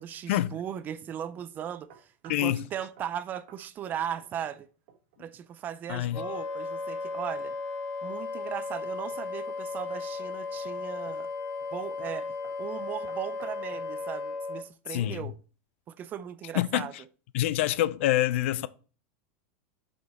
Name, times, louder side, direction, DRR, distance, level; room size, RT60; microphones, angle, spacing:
voice 1, 0.0-4.7 5.2-7.5 8.0-11.3 11.7-12.3 12.6-15.3 15.9-16.9, right 9 dB, 25° right, 0.5 m, -37 dB
sound 1, 1.6-2.5 3.0-3.2 3.5-3.6 3.9-4.6 4.9-5.2 8.6-9.3 9.9-10.3 11.1-11.3 11.6-11.8 12.1-13.9, right 8 dB, 65° right, 1.4 m, -55 dB
voice 2, 2.3-2.6 5.9-6.2 14.9-15.3 16.5-16.9 17.3-18.7, left 14 dB, 70° left, 0.4 m, -26 dB
Wind instrument woodwind instrument, 6.1-14.6, left 4 dB, 40° left, 2.0 m, -35 dB
7.7 x 5.0 x 4.1 m
supercardioid pair, 155°, 7 cm